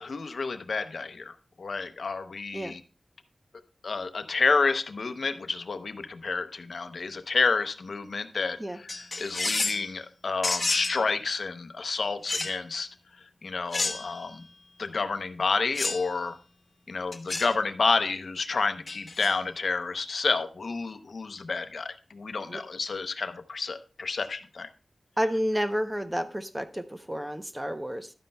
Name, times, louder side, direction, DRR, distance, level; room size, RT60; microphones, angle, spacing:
voice 1, 0.0-2.8 3.8-8.9 9.2-12.9 13.4-14.4 14.8-16.4 16.9-24.7, left 4 dB, 75° left, 9 dB, 0.7 m, -29 dB
sound 1, 8.9-9.9 10.4-11.0 12.3-12.6 13.7-14.3 15.7-16.1 17.1-17.5 18.9-19.3, left 3 dB, 50° left, 1.0 m, -30 dB
voice 2, 25.2-28.1, equal, 15° right, 9 dB, 0.7 m, -30 dB
11.5 x 9.4 x 2.2 m, 0.35 s
wide cardioid pair, 95°, 0 cm